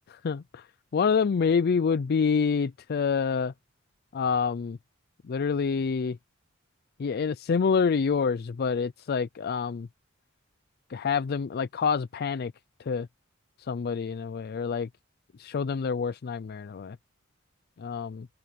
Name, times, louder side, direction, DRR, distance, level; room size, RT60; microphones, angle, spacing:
voice 1, 0.1-0.6 0.9-3.5 4.1-4.8 5.2-6.2 7.0-9.9 10.9-12.5 12.8-13.1 13.6-14.9 15.4-17.0 17.8-18.3, left 5 dB, 50° left, 0.4 m, -27 dB
open air
head